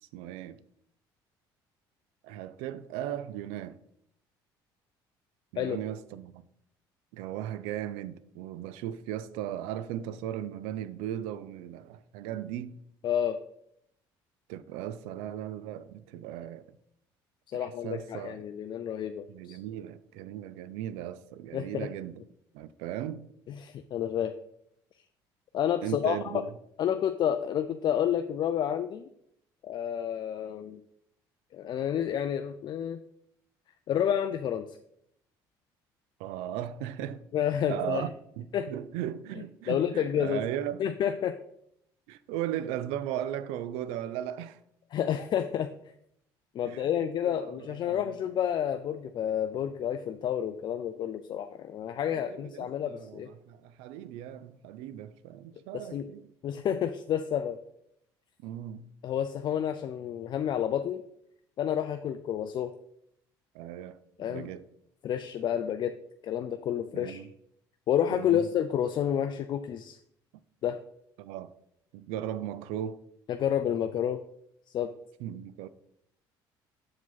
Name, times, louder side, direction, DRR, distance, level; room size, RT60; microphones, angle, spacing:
voice 1, 0.1-0.6 2.2-3.8 5.5-6.4 7.1-12.8 14.5-16.7 17.5-18.4 19.3-22.2 22.5-23.3 25.8-26.5 36.2-37.3 37.7-40.8 42.1-44.6 46.6-46.9 47.2-48.2 52.1-56.3 58.4-58.9 63.5-64.6 66.9-67.3 68.1-68.5 71.2-71.5 71.9-73.0 75.2-75.7, right 11 dB, 85° right, 0.4 m, -37 dB
voice 2, 13.0-13.4 17.5-19.6 21.5-21.9 23.6-24.3 25.5-26.4 26.8-29.1 29.6-30.8 31.5-33.0 33.9-34.7 37.3-38.1 38.5-38.7 39.7-40.4 40.8-41.4 44.9-45.7 46.5-53.3 55.7-56.1 56.4-57.6 59.0-61.0 61.6-62.7 64.2-64.5 65.0-66.0 66.2-67.2 67.9-70.0 70.6-70.8 73.3-74.2 74.7-74.9, left 9 dB, 50° left, 0.4 m, -30 dB
7.2 x 4.9 x 4.0 m
supercardioid pair, 85°, 10 cm